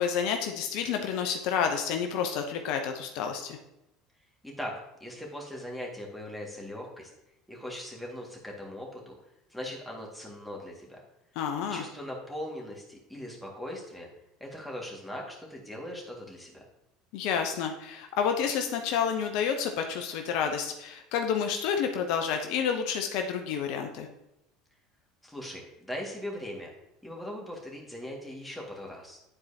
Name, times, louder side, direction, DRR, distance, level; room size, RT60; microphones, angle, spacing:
voice 1, 0.0-3.6 11.4-11.8 17.1-24.1, left 7 dB, 65° left, 5 dB, 0.7 m, -29 dB
voice 2, 4.4-4.7 5.0-7.1 7.5-9.2 9.5-11.0 11.7-14.1 14.4-16.6 25.2-26.7 27.0-29.2, left 1 dB, 5° left, -2 dB, 2.0 m, -40 dB
9.7 x 4.5 x 2.8 m, 0.86 s
hypercardioid pair, 80°, 0 cm